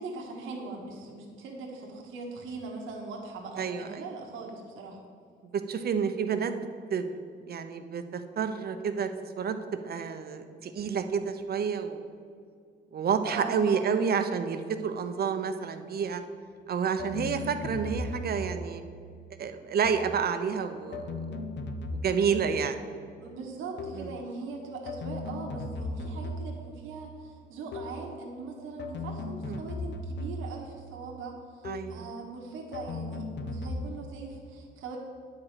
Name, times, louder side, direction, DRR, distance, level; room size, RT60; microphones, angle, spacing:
voice 1, 0.0-5.0 13.2-14.0 23.2-35.0, right 3 dB, 85° right, -1 dB, 1.4 m, -41 dB
voice 2, 3.6-4.0 5.4-9.1 9.4-12.1 12.9-16.2 16.7-18.8 19.4-21.4 21.9-22.8 24.0-24.1 29.4-29.6 31.6-32.0, right 6 dB, 50° right, 8 dB, 0.8 m, -30 dB
sound 1, 17.0-18.8 19.8-20.3 20.9-22.8 23.8-24.2 24.9-26.7 27.7-28.1 28.8-30.7 31.6-32.1 32.7-33.9, left 2 dB, 65° left, 0.9 m, -37 dB
9.4 x 5.0 x 7.4 m, 2.3 s
cardioid pair, 90°, 20 cm